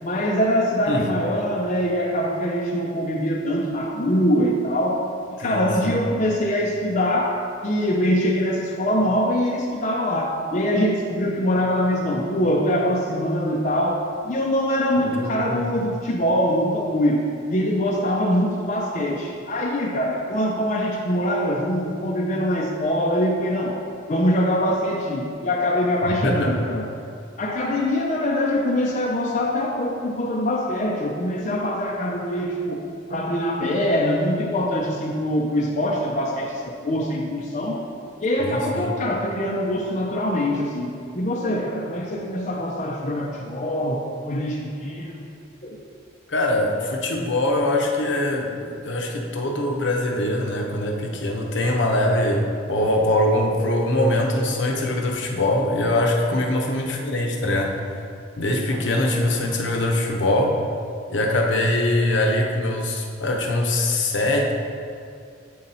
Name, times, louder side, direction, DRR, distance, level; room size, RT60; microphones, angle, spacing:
voice 1, 0.0-5.0 5.4-7.4 7.6-23.8 24.1-26.9 27.4-32.8 33.1-37.8 38.2-45.3 45.6-45.8 56.3-56.4, equal, 40° left, -1 dB, 0.5 m, -23 dB
voice 2, 5.4-6.0 15.0-15.7 26.0-26.5 38.4-38.9 46.3-57.7 58.4-60.5 61.1-64.5, left 1 dB, 70° left, 1 dB, 0.8 m, -23 dB
8.5 x 3.9 x 4.2 m, 2.3 s
head